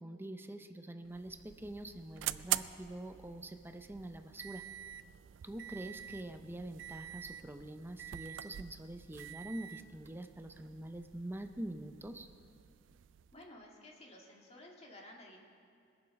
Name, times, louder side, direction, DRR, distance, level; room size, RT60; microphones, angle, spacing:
voice 1, 0.0-4.6 5.4-12.3, right 1 dB, 10° right, 7 dB, 0.6 m, -45 dB
sound 1, 1.0-13.5, right 13 dB, 80° right, 0.3 m, -45 dB
voice 2, 13.3-15.4, left 1 dB, 35° left, -1 dB, 1.9 m, -54 dB
21.0 x 7.0 x 5.2 m, 2.3 s
head